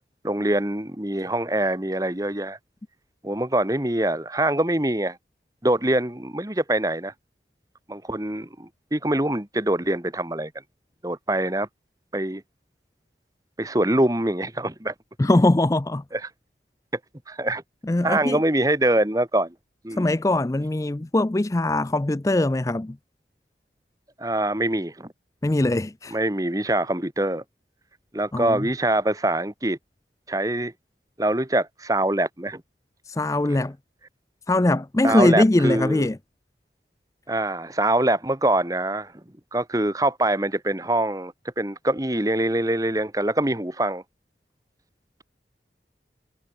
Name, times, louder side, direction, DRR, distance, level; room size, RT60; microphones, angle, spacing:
voice 1, 0.2-2.6 3.2-5.2 5.6-7.1 7.9-10.5 11.0-11.7 12.1-12.4 13.6-14.9 16.1-16.3 17.3-17.6 18.0-19.5 19.8-20.1 24.2-25.1 26.1-27.4 28.1-29.8 30.3-30.7 31.2-32.6 33.5-33.6 35.0-36.1 37.3-39.1 39.5-44.0, right 1 dB, 20° right, 1.6 m, -24 dB
voice 2, 15.2-16.0 17.9-18.4 20.0-23.0 25.4-26.2 28.3-28.7 33.1-33.8 34.5-36.2, left 2 dB, 20° left, 0.4 m, -21 dB
head